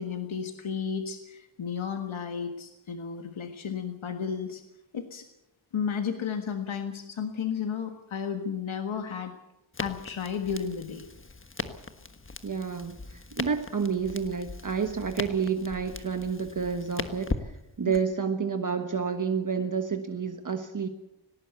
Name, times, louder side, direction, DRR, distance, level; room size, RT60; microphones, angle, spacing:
voice 1, 0.0-4.6 4.9-5.3 5.7-9.3 9.8-11.1 17.8-17.9, left 7 dB, 85° left, 6 dB, 1.6 m, -33 dB
Crackle, 9.7-18.0, left 3 dB, 25° left, 1.4 m, -39 dB
voice 2, 12.4-20.9, right 6 dB, 40° right, 6 dB, 1.3 m, -30 dB
18.5 x 18.5 x 8.1 m, 0.89 s
wide cardioid pair, 100°, 46 cm